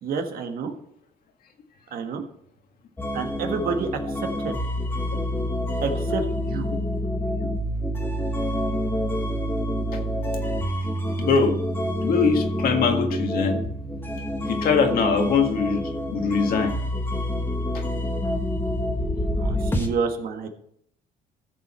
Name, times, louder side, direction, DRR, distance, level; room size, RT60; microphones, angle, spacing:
voice 1, 0.0-0.7 1.9-2.2 3.1-3.9 4.4-4.5 5.8-6.7 19.4-20.5, right 5 dB, 60° right, 4 dB, 1.5 m, -29 dB
sound 1, 3.0-19.9, equal, 10° left, 1.4 m, -27 dB
voice 2, 11.2-11.5 12.0-13.6 14.5-16.8 17.7-17.8, left 5 dB, 60° left, 4 dB, 1.8 m, -22 dB
14.5 x 6.9 x 4.4 m, 0.71 s
cardioid pair, 110°, 17 cm